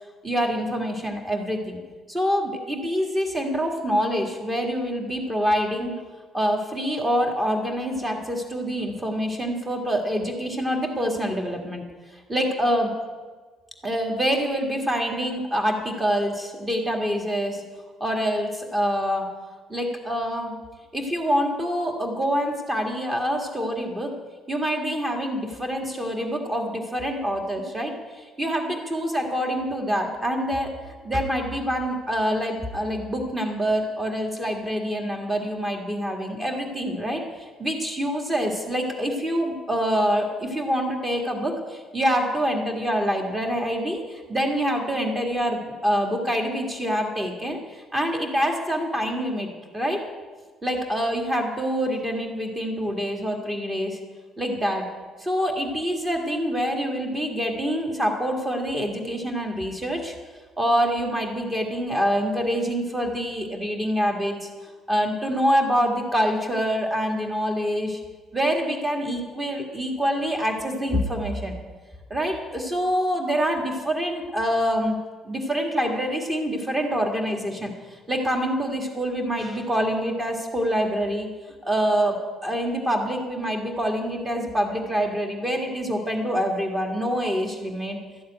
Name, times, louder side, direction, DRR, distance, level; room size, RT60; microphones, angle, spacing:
voice 1, 0.2-1.8 2.1-5.9 6.3-11.8 12.3-12.9 13.8-17.6 18.0-19.3 19.7-20.5 20.9-24.1 24.5-44.0 44.3-50.0 50.6-54.0 54.4-54.8 55.2-60.1 60.6-64.5 64.9-68.0 68.3-71.5 72.1-75.0 75.2-77.7 78.1-81.3 81.6-82.2 82.4-88.0, equal, 15° right, 2 dB, 1.8 m, -26 dB
12.5 x 7.2 x 9.9 m, 1.4 s
cardioid pair, 175°, 0 cm